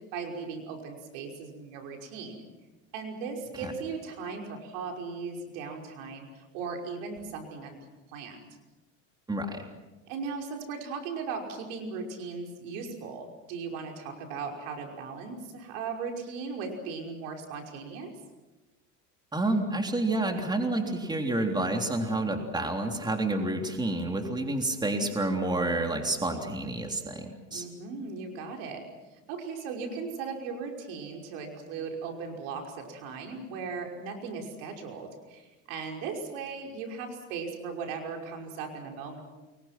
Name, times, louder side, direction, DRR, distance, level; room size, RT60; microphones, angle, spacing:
voice 1, 0.1-2.4 2.9-7.8 8.1-8.5 10.1-18.1 27.5-28.8 29.3-39.2, right 5 dB, 75° right, 3 dB, 5.6 m, -37 dB
voice 2, 9.3-9.6 19.3-27.7, right 2 dB, 10° right, 3 dB, 3.4 m, -29 dB
29.5 x 23.0 x 6.0 m, 1.2 s
supercardioid pair, 115°, 38 cm